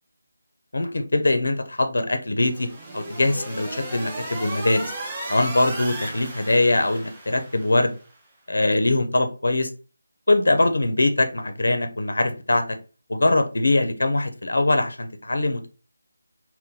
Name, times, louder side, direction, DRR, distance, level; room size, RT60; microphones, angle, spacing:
voice 1, 0.7-2.7 2.9-4.9 5.3-7.9 8.5-9.7 10.3-12.8 13.1-15.7, left 2 dB, 80° left, 7 dB, 0.6 m, -22 dB
sound 1, 2.4-8.0, right 2 dB, 10° right, 0.4 m, -35 dB
2.7 x 2.1 x 3.7 m, 0.36 s
figure-of-eight pair, 175°, 0 cm